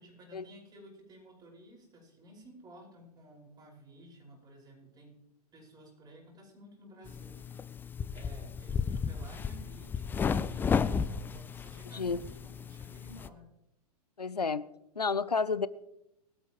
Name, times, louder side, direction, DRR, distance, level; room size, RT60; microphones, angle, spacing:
voice 1, 0.0-5.2 5.5-7.4 7.8-13.5, equal, 20° right, -1 dB, 5.2 m, -54 dB
sound 1, 7.0-13.3, left 6 dB, 10° left, 0.4 m, -33 dB
voice 2, 14.2-14.6 15.0-15.7, left 4 dB, 85° left, 18 dB, 0.7 m, -30 dB
21.5 x 12.5 x 3.0 m, 0.84 s
figure-of-eight pair, 105°, 20 cm